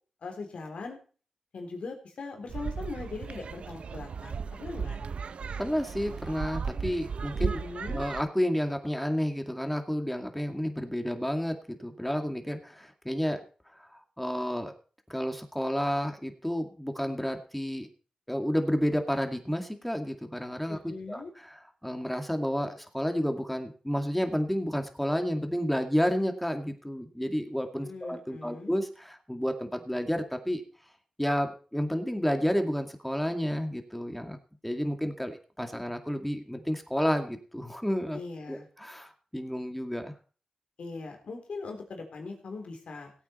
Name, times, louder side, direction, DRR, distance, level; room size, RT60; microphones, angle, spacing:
voice 1, 0.2-1.0 1.5-5.0 7.4-8.0 20.7-21.3 27.8-28.8 38.1-38.7 40.8-43.1, left 3 dB, 80° left, 3 dB, 3.5 m, -40 dB
sound 1, 2.5-8.2, right 5 dB, 80° right, 0.6 m, -35 dB
voice 2, 5.6-7.5 7.9-13.4 13.9-14.7 15.1-17.9 18.3-20.8 21.1-30.6 31.2-34.4 34.6-38.2 38.5-40.1, equal, 5° left, 6 dB, 2.2 m, -31 dB
17.5 x 8.6 x 4.4 m, 0.39 s
cardioid pair, 55°, 2 cm